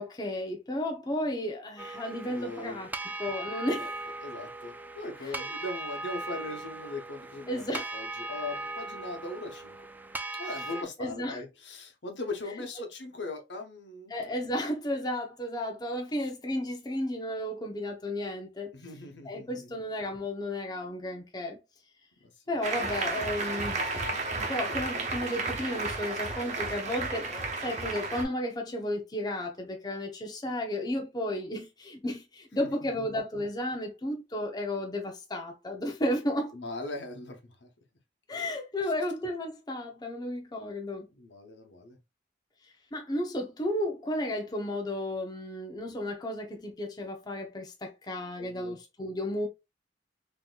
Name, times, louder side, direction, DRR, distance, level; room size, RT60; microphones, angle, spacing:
voice 1, 0.0-2.9 3.2-3.9 5.2-5.5 7.5-7.9 10.7-11.4 14.1-18.7 19.2-21.6 22.5-23.9 24.3-27.3 27.6-36.5 38.3-41.1 42.9-49.5, left 1 dB, 25° left, 0.7 m, -33 dB
sound 1, 1.8-10.8, right 2 dB, 10° right, 0.4 m, -39 dB
voice 2, 2.2-2.8 3.7-3.9 4.2-9.8 10.4-14.1 16.2-16.3 18.7-19.8 32.6-32.7 32.9-33.1 36.5-37.7 38.8-38.9 41.1-42.0 48.4-48.8, left 2 dB, 75° left, 1.1 m, -40 dB
Applause, 22.6-28.2, right 3 dB, 40° right, 1.1 m, -33 dB
4.0 x 2.9 x 2.3 m
head